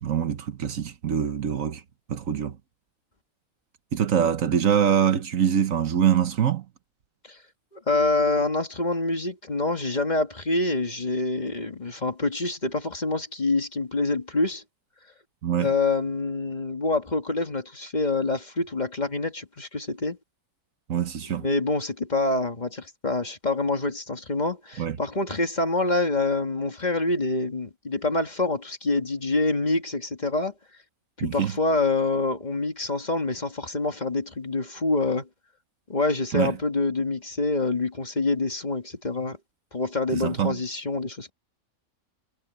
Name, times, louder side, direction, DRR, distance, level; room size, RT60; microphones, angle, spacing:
voice 1, 0.0-1.8 2.1-2.5 3.9-6.6 15.4-15.7 20.9-21.4 24.8-25.0 31.2-31.5 36.3-36.5 40.1-40.6, right 9 dB, 70° right, 1.4 m, -24 dB
voice 2, 7.7-14.6 15.6-20.2 21.3-30.5 31.2-35.3 35.9-39.4 39.7-41.3, left 2 dB, 30° left, 1.7 m, -26 dB
omnidirectional pair, 1.5 m